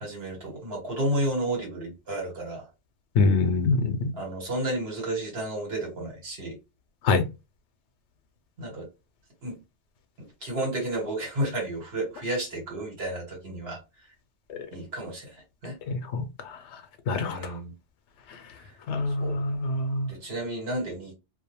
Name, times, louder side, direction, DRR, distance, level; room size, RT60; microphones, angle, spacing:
voice 1, 0.0-2.6 4.1-6.6 8.6-8.9 9.4-9.6 10.4-13.8 14.7-15.3 15.6-15.8 17.3-17.7 19.1-19.4 20.1-21.1, right 1 dB, 60° right, 1.3 m, -31 dB
voice 2, 3.2-3.9 7.0-7.2 15.9-16.2 17.1-17.4 18.9-20.1, left 3 dB, 85° left, 0.9 m, -24 dB
2.3 x 2.2 x 2.9 m
omnidirectional pair, 1.2 m